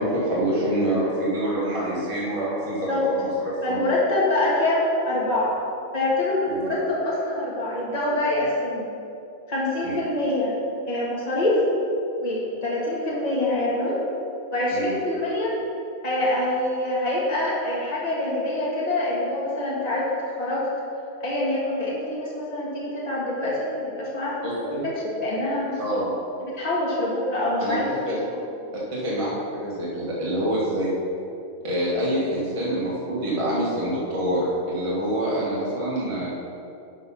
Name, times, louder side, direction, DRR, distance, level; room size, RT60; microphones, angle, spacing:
voice 1, 0.0-2.9 3.1-3.8 6.5-6.6 9.8-9.9 14.7-14.9 24.4-24.9 25.8-26.1 27.6-27.8 28.0-28.2 28.7-30.9 31.6-36.3, right 1 dB, 20° right, -7 dB, 1.5 m, -26 dB
voice 2, 3.6-5.5 5.9-8.9 9.5-10.5 10.9-11.6 12.2-14.0 14.5-15.5 16.0-20.1 20.4-20.7 21.2-24.9 25.2-25.8 26.4-27.9 28.2-28.3, left 1 dB, 25° left, -6 dB, 1.8 m, -25 dB
10.5 x 4.1 x 5.5 m, 2.7 s
omnidirectional pair, 1.5 m